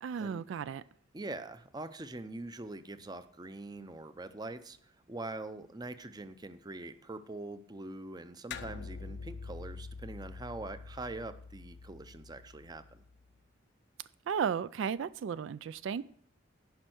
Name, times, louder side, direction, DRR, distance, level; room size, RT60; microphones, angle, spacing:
voice 1, 0.0-0.8 14.3-16.0, right 7 dB, 75° right, 0.3 m, -34 dB
voice 2, 1.1-13.0, right 2 dB, 20° right, 0.6 m, -43 dB
sound 1, 8.5-13.2, left 4 dB, 60° left, 0.5 m, -46 dB
10.5 x 5.5 x 7.7 m
head